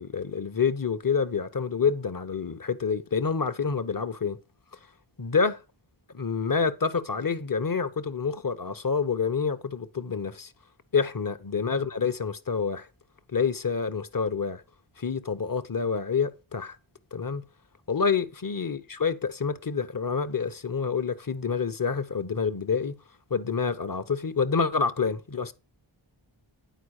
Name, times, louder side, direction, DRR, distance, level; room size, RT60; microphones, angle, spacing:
voice 1, 0.0-4.4 4.7-4.8 5.2-5.6 6.1-10.5 10.9-12.9 13.3-14.6 15.0-16.8 17.1-17.4 17.9-22.9 23.3-25.5, left 5 dB, 45° left, 1.0 m, -27 dB
10.5 x 4.7 x 6.4 m
wide cardioid pair, 40°, 49 cm